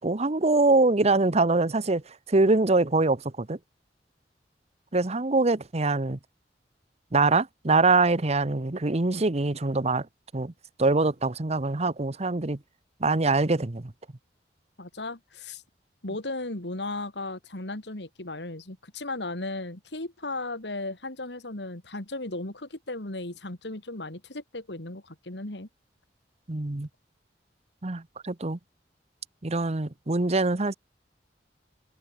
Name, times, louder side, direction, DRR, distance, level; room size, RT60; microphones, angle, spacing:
voice 1, 0.0-3.6 4.9-6.2 7.1-10.1 10.3-10.5 10.8-12.6 13.0-13.9 26.5-26.9 27.8-28.6 29.4-30.7, right 3 dB, 40° right, 1.0 m, -24 dB
voice 2, 14.8-15.6 16.0-25.7, left 2 dB, 80° left, 3.0 m, -36 dB
head